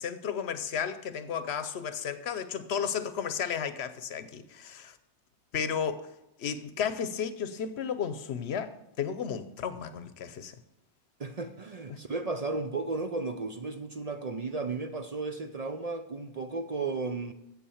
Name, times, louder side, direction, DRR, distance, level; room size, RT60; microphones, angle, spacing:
voice 1, 0.0-5.0 5.5-6.1 6.4-10.5 11.9-12.0, left 7 dB, 70° left, 1.0 m, -33 dB
voice 2, 11.2-17.3, right 3 dB, 45° right, 0.6 m, -34 dB
8.5 x 7.6 x 7.1 m
omnidirectional pair, 1.2 m